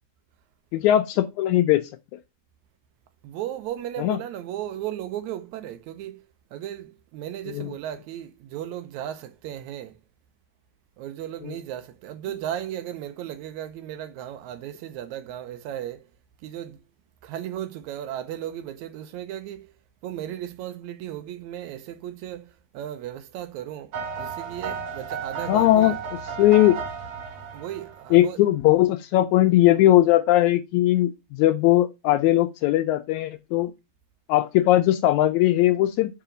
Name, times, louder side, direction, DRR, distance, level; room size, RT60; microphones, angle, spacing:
voice 1, 0.7-1.8 4.0-4.2 7.5-7.7 11.4-11.5 25.5-26.0 26.4-26.8 28.1-33.7 34.3-36.2, left 14 dB, 80° left, 1.9 m, -19 dB
voice 2, 3.2-6.3 6.5-10.0 11.0-16.1 16.4-16.8 17.2-19.7 20.0-26.0 27.5-28.4, right 11 dB, 80° right, 2.0 m, -35 dB
sound 1, 23.9-28.2, right 6 dB, 60° right, 2.3 m, -33 dB
5.8 x 4.9 x 3.9 m
omnidirectional pair, 3.5 m